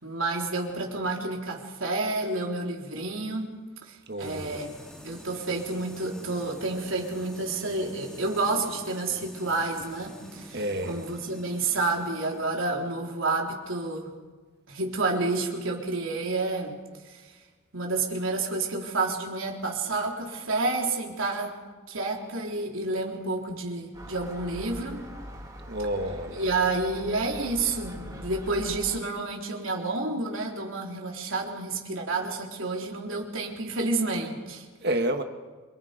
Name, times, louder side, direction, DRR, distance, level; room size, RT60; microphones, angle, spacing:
voice 1, 0.0-10.6 10.9-14.1 14.7-16.8 17.1-17.2 17.7-21.6 21.9-25.0 26.4-34.7, right 3 dB, 70° right, 0 dB, 3.6 m, -30 dB
voice 2, 4.1-4.6 10.5-11.0 25.7-26.4 34.8-35.2, right 1 dB, 50° right, 6 dB, 1.8 m, -29 dB
sound 1, 4.2-13.8, equal, 5° left, 2.6 m, -47 dB
Gull seagull, 23.9-29.0, equal, 20° right, 2.9 m, -42 dB
27.0 x 24.0 x 5.2 m, 1.4 s
head